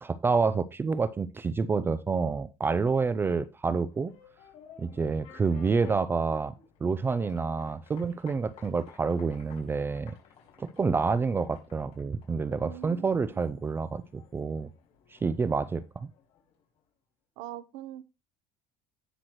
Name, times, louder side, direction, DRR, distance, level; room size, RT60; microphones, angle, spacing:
voice 1, 0.0-4.1 4.8-6.5 6.8-10.1 10.6-14.7 15.1-16.1, right 4 dB, 20° right, 16 dB, 0.5 m, -28 dB
sound 1, 3.9-16.6, left 8 dB, 55° left, 4.9 m, -55 dB
voice 2, 12.6-13.1 17.4-18.0, right 13 dB, 80° right, 16 dB, 1.0 m, -41 dB
18.0 x 6.0 x 3.0 m, 0.25 s
cardioid pair, 150°, 12 cm